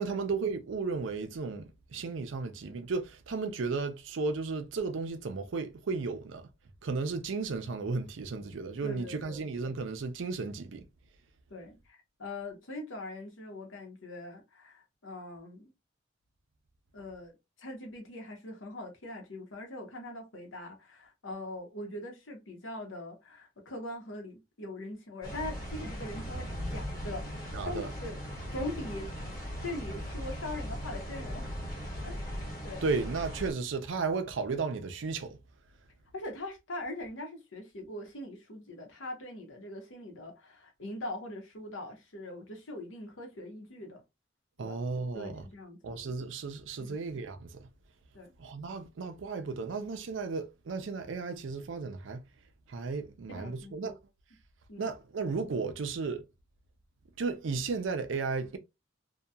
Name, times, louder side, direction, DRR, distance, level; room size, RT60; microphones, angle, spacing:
voice 1, 0.0-6.5 6.8-10.9 27.5-27.9 32.8-35.4 44.6-45.4 45.8-47.6 48.4-52.2 52.7-53.9 54.8-56.2 57.2-58.6, right 4 dB, 75° right, 0.5 m, -34 dB
voice 2, 8.8-9.5 11.5-15.7 16.9-28.2 28.5-29.1 29.6-31.5 32.0-32.2 32.6-32.9 36.1-44.0 44.6-44.8 45.1-46.0 46.8-47.0 48.1-48.3 53.3-54.0 54.7-54.9, left 1 dB, 85° left, 0.9 m, -42 dB
sound 1, 25.2-33.5, equal, 20° left, 1.2 m, -38 dB
2.8 x 2.2 x 2.3 m
head